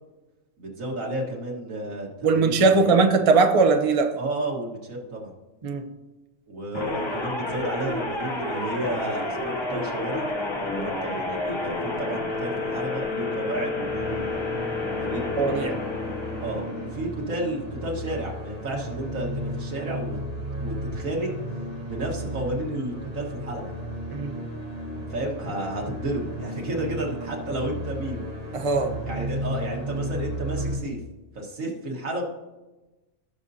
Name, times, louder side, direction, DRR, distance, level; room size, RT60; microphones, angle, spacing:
voice 1, 0.6-3.0 4.2-5.3 6.5-10.3 10.7-14.4 15.0-15.8 16.4-20.2 20.6-21.3 21.8-23.7 25.1-28.2 29.0-31.0 31.3-32.2, right 1 dB, 85° right, 0 dB, 2.1 m, -32 dB
voice 2, 2.2-4.1 5.6-5.8 15.4-15.7 24.1-24.3 28.5-28.9, right 4 dB, 30° right, 5 dB, 0.7 m, -20 dB
sound 1, 6.7-17.1, left 2 dB, 25° left, 0.8 m, -30 dB
sound 2, 13.8-30.8, equal, 50° right, 2.6 m, -34 dB
16.5 x 6.5 x 2.8 m, 1.1 s
omnidirectional pair, 1.4 m